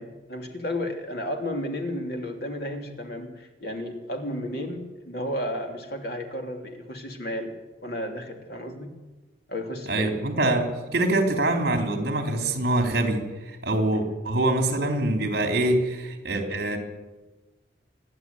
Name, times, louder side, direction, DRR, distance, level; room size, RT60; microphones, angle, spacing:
voice 1, 0.0-7.5 7.8-8.9 9.5-10.2 13.9-14.1, left 1 dB, 55° left, 3 dB, 3.1 m, -33 dB
voice 2, 9.9-13.2 13.6-16.8, right 1 dB, 50° right, 4 dB, 3.8 m, -24 dB
28.0 x 11.0 x 9.5 m, 1.2 s
head